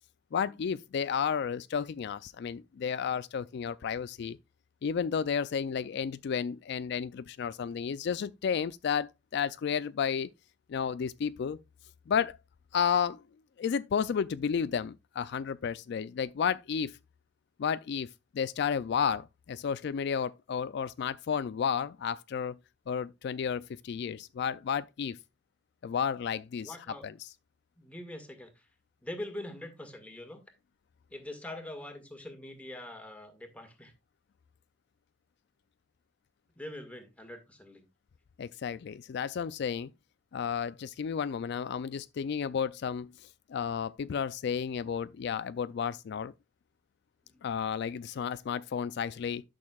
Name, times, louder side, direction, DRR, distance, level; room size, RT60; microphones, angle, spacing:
voice 1, 0.3-4.4 4.8-10.3 10.7-11.6 12.1-12.4 12.7-13.2 13.6-17.0 17.6-18.1 18.3-22.6 22.9-25.2 25.8-26.8 27.0-27.3 38.4-39.9 40.3-46.3 47.4-49.4, left 7 dB, 60° left, 0.3 m, -32 dB
voice 2, 26.6-27.1 27.8-28.6 29.0-30.4 31.1-33.9 36.6-37.8 47.3-47.4, left 1 dB, 5° left, 1.8 m, -43 dB
12.0 x 6.6 x 2.3 m
head